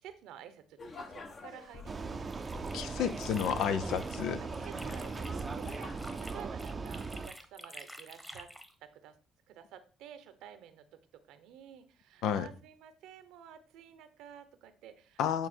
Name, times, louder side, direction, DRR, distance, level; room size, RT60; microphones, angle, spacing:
voice 1, 0.0-2.3 4.4-8.5 8.8-9.1 9.5-10.9 11.1-15.2, right 10 dB, 80° right, 11 dB, 0.9 m, -51 dB
sound 1, 0.8-6.5, left 3 dB, 45° left, 1.4 m, -49 dB
Vehicle, 1.9-7.3, right 4 dB, 35° right, 0.6 m, -39 dB
sound 2, 2.1-4.3 4.5-8.7, equal, 5° left, 1.1 m, -50 dB
voice 2, 2.7-4.4 12.2-12.5 15.2-15.5, left 8 dB, 75° left, 12 dB, 0.6 m, -31 dB
8.5 x 3.5 x 4.5 m, 0.39 s
supercardioid pair, 75°, 0 cm